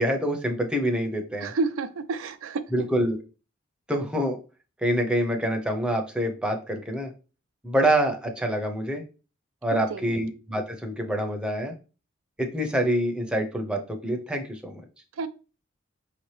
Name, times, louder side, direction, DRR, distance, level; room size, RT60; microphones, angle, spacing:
voice 1, 0.0-1.5 2.7-3.2 3.9-4.4 4.8-7.1 7.6-9.0 9.6-11.7 12.4-14.8, right 1 dB, 5° right, 2 dB, 0.6 m, -26 dB
voice 2, 1.4-2.6 9.7-10.2 15.2-15.3, right 3 dB, 90° right, 11 dB, 0.4 m, -30 dB
5.2 x 2.8 x 3.2 m, 0.33 s
head